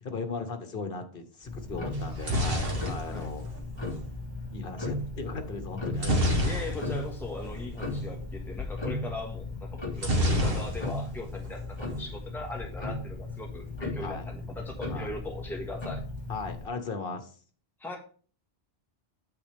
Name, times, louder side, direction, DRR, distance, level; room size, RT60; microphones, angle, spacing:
voice 1, 0.0-3.4 4.5-6.5 14.0-14.2 14.9-15.1 16.3-17.3, left 4 dB, 60° left, 7 dB, 1.4 m, -37 dB
Tick-tock, 1.4-16.7, left 2 dB, 25° left, 1.9 m, -37 dB
sound 1, 1.9-4.1 6.0-7.2 7.5-7.6 7.8-8.1 10.0-11.2 11.5-12.1, equal, 65° right, 1.5 m, -28 dB
voice 2, 6.4-16.0 17.8-18.0, left 2 dB, ahead, 0 dB, 1.5 m, -39 dB
8.6 x 7.3 x 3.5 m, 0.42 s
omnidirectional pair, 1.1 m